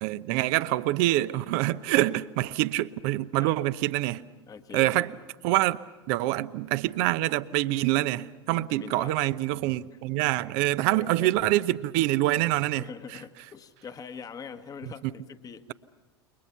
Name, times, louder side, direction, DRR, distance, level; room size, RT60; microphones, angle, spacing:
voice 1, 0.0-4.2 4.7-5.1 5.4-5.8 6.1-12.9 15.0-15.1, right 16 dB, 50° right, 0.9 m, -25 dB
voice 2, 4.5-5.0 8.5-9.2 10.8-11.4 12.8-15.6, left 6 dB, 25° left, 1.4 m, -43 dB
29.0 x 23.0 x 5.8 m
figure-of-eight pair, 80°, 14 cm